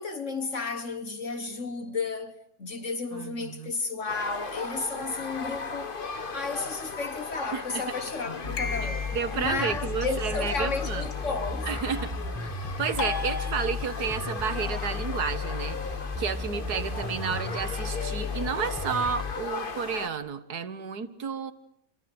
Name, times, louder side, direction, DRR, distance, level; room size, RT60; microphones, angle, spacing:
voice 1, 0.0-6.0 6.3-11.7, left 4 dB, 50° left, 1.8 m, -33 dB
voice 2, 3.1-3.7 7.5-8.0 9.1-11.1 11.7-12.1 12.8-21.5, right 6 dB, 80° right, 2.1 m, -31 dB
sound 1, 4.1-20.1, left 4 dB, 35° left, 1.6 m, -37 dB
sound 2, 8.4-19.3, left 4 dB, ahead, 2.0 m, -34 dB
sound 3, 8.6-9.5 13.0-14.2, left 4 dB, 80° left, 2.4 m, -34 dB
29.0 x 25.0 x 8.0 m
omnidirectional pair, 1.7 m